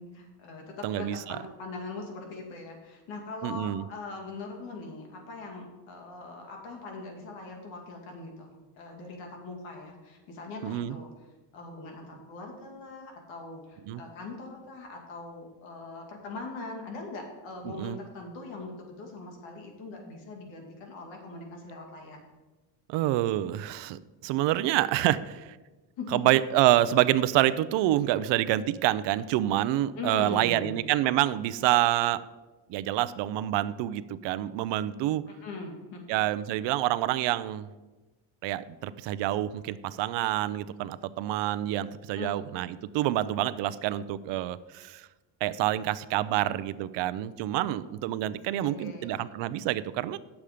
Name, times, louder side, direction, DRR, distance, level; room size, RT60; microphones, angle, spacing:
voice 1, 0.0-11.1 11.5-22.3 26.0-26.2 30.0-30.9 35.4-36.0 42.1-42.3 48.6-49.3, left 3 dB, 80° left, 1 dB, 2.4 m, -41 dB
voice 2, 0.8-1.4 3.4-3.8 10.6-11.0 13.9-14.0 17.7-18.0 22.9-25.6 26.1-32.2 32.7-35.3 36.1-37.7 38.4-45.1 45.4-50.2, right 14 dB, 70° right, 15 dB, 0.6 m, -27 dB
9.2 x 7.2 x 5.0 m, 1.2 s
cardioid pair, 140°, 45 cm